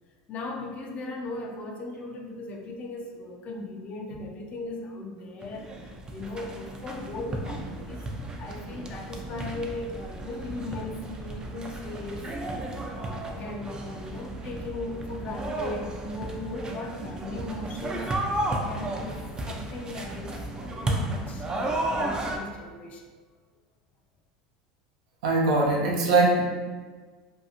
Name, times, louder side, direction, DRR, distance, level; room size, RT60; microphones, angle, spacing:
voice 1, 0.3-8.1 8.4-12.3 12.9-18.1 18.5-19.2 19.5-23.1, left 2 dB, 40° left, 0 dB, 0.4 m, -38 dB
sound 1, 5.4-22.4, right 1 dB, 20° right, 0.4 m, -33 dB
voice 2, 25.2-26.4, right 2 dB, 75° right, -2 dB, 0.5 m, -21 dB
2.6 x 2.3 x 2.7 m, 1.4 s
hypercardioid pair, 90°, 4 cm